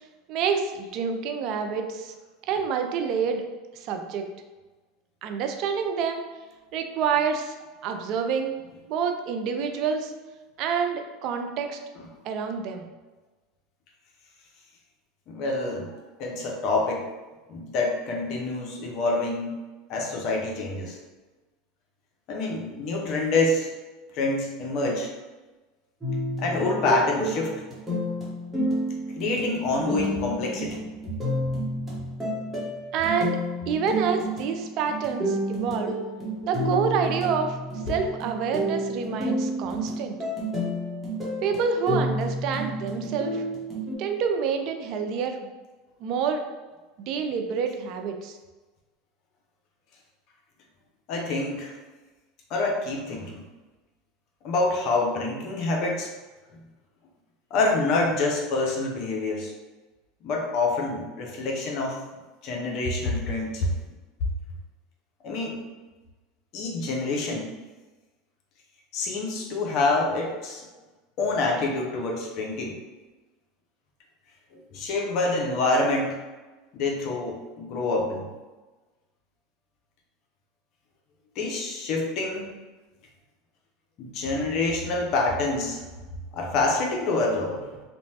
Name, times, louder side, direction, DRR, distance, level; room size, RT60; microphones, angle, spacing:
voice 1, 0.3-2.1 2.5-3.4 3.8-4.3 5.2-6.3 6.7-7.5 7.8-8.5 8.9-10.1 10.6-11.8 12.2-12.9 32.9-36.0 36.4-37.6 37.9-40.2 41.4-43.4 44.0-45.4 46.0-46.4 47.0-48.4, right 6 dB, 55° right, 5 dB, 0.3 m, -27 dB
voice 2, 15.3-17.1 17.5-19.6 19.9-21.0 22.3-23.7 24.1-25.1 26.4-27.5 29.2-30.8 51.1-51.8 52.5-53.4 54.4-56.1 57.5-59.5 60.2-62.0 62.4-63.7 65.2-65.6 66.5-67.5 68.9-70.6 71.2-72.8 74.5-76.2 76.7-78.3 81.4-82.6 84.0-85.8 86.3-87.8, left 2 dB, 55° left, 0 dB, 0.6 m, -26 dB
sound 1, 26.0-43.9, equal, 10° right, 1.1 m, -30 dB
2.9 x 2.1 x 2.8 m, 1.2 s
hypercardioid pair, 95°, 0 cm